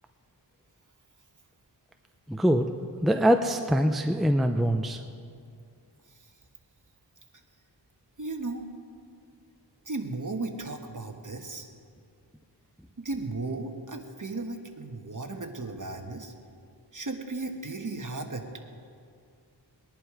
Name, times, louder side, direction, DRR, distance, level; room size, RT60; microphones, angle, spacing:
voice 1, 2.3-2.7 3.0-5.0, equal, ahead, 6 dB, 0.6 m, -23 dB
voice 2, 8.2-8.7 9.8-11.7 13.0-16.3 16.9-18.5, right 3 dB, 45° right, 4 dB, 1.4 m, -35 dB
20.5 x 11.0 x 4.9 m, 2.3 s
wide cardioid pair, 55°, 44 cm